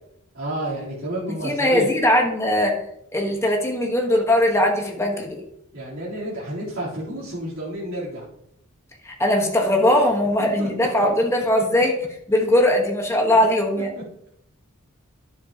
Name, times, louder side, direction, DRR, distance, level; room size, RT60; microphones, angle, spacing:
voice 1, 0.3-1.9 5.7-8.3 10.4-10.7 13.3-13.4, right 1 dB, 65° right, -8 dB, 3.6 m, -30 dB
voice 2, 1.4-2.8 3.1-5.4 9.0-11.9 12.3-13.9, left 1 dB, 15° left, 1 dB, 1.3 m, -20 dB
10.5 x 7.4 x 2.9 m, 0.77 s
head